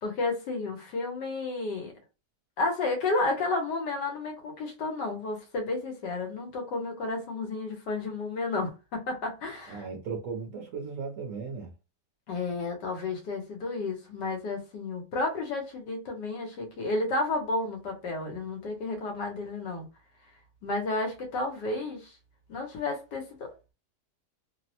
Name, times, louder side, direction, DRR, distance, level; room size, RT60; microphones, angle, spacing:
voice 1, 0.0-1.9 2.6-9.8 12.3-19.9 20.6-22.1 22.5-23.7, left 3 dB, 90° left, 1.5 m, -32 dB
voice 2, 9.7-11.7, right 5 dB, 65° right, 0.9 m, -36 dB
3.2 x 2.0 x 2.7 m
omnidirectional pair, 1.8 m